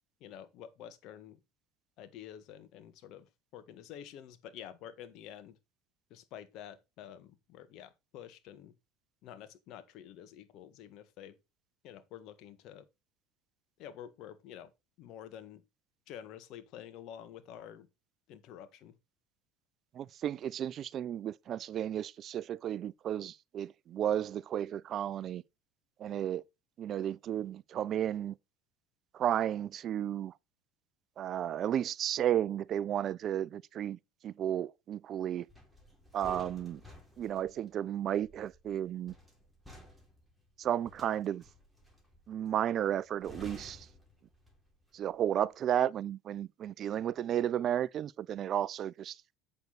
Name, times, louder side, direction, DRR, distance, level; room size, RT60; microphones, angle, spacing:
voice 1, 0.2-1.4 2.0-3.2 3.5-5.6 6.1-8.7 9.2-11.3 11.8-12.8 13.8-14.7 15.0-15.6 16.1-17.9 18.3-18.9, left 10 dB, 60° left, 1.5 m, -49 dB
voice 2, 19.9-25.4 26.0-26.4 26.8-28.3 29.1-30.3 31.2-34.0 34.2-35.5 36.1-36.8 37.2-39.1 40.6-41.4 42.3-43.9 44.9-49.2, right 10 dB, 50° right, 0.4 m, -33 dB
sound 1, 35.5-44.8 45.1-45.4, equal, ahead, 3.6 m, -53 dB
8.1 x 6.7 x 4.0 m
supercardioid pair, 90°, 0 cm